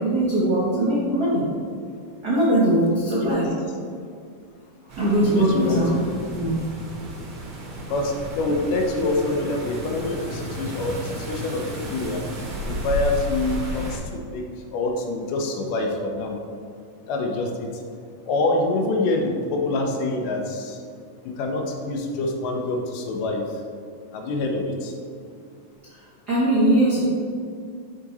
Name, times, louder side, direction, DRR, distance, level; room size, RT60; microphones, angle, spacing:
voice 1, 0.0-1.5 2.2-3.5 5.0-5.9 6.4-6.5 25.9-27.0, right 1 dB, 85° right, -8 dB, 0.8 m, -21 dB
sound 1, 4.9-14.0, equal, 55° right, 1.5 m, -33 dB
voice 2, 5.2-6.0 7.9-14.4 14.7-16.3 17.1-17.7 18.3-20.8 21.4-23.4 24.1-24.9, left 2 dB, 85° left, 1 dB, 2.4 m, -26 dB
7.5 x 3.8 x 4.1 m, 2.3 s
omnidirectional pair, 3.6 m